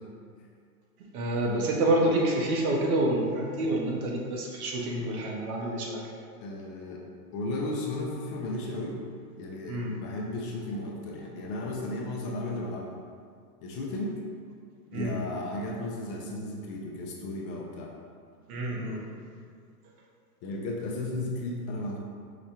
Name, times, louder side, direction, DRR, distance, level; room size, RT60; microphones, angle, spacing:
voice 1, 1.1-6.0 9.7-9.9 14.9-15.2 18.5-19.0, right 1 dB, 65° right, -1 dB, 1.0 m, -28 dB
voice 2, 6.4-7.0 7.3-9.0 9.4-12.9 13.6-14.2 14.9-17.9 20.4-22.0, left 2 dB, 35° left, -1 dB, 0.6 m, -34 dB
4.9 x 2.2 x 4.3 m, 2.1 s
hypercardioid pair, 120°, 48 cm